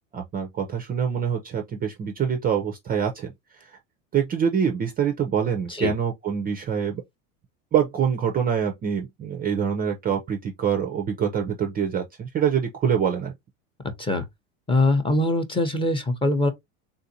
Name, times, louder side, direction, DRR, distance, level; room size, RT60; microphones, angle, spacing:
voice 1, 0.1-3.8 4.1-7.0 7.7-13.3, right 7 dB, 20° right, 0.4 m, -25 dB
voice 2, 14.7-16.5, left 2 dB, 15° left, 0.7 m, -22 dB
3.7 x 2.5 x 2.6 m
hypercardioid pair, 105°, 41 cm